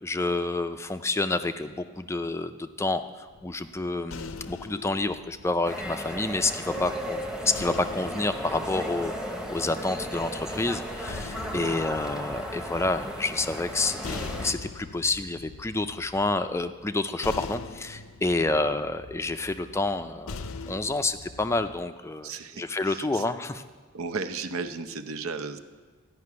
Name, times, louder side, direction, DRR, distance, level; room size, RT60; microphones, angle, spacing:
voice 1, 0.0-9.1 9.5-20.3 20.7-22.3 22.6-23.6, left 2 dB, 15° left, 9 dB, 0.4 m, -29 dB
sound 1, 3.3-6.6 7.5-9.8 10.8-21.8, left 4 dB, 75° left, 0.6 m, -42 dB
sound 2, 5.6-14.5, equal, 5° right, 0.8 m, -35 dB
voice 2, 6.7-7.0 11.5-11.8 18.4-18.7 22.2-23.2 23.9-25.6, right 4 dB, 80° right, 10 dB, 0.7 m, -35 dB
13.5 x 5.9 x 9.5 m, 1.4 s
head